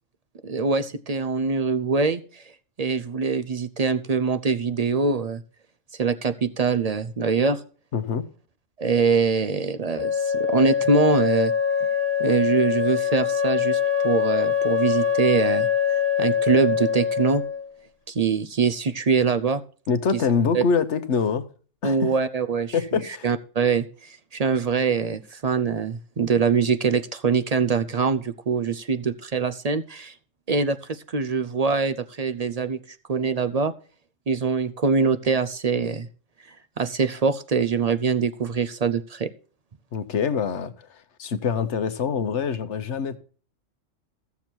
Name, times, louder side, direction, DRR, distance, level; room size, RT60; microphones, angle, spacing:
voice 1, 0.4-2.4 2.8-5.4 6.0-7.6 8.8-11.5 12.2-15.7 16.2-17.4 18.1-19.6 20.1-20.2 20.5-20.6 21.8-30.1 30.5-32.8 33.1-33.7 34.3-36.1 36.8-39.3, right 5 dB, 45° right, 0.5 m, -23 dB
voice 2, 7.9-8.3 19.9-21.5 21.8-22.1 22.7-23.3 39.9-43.2, left 6 dB, 65° left, 1.2 m, -25 dB
Wind instrument woodwind instrument, 9.9-17.7, left 8 dB, 45° left, 1.0 m, -23 dB
15.0 x 7.2 x 4.4 m
omnidirectional pair, 1.3 m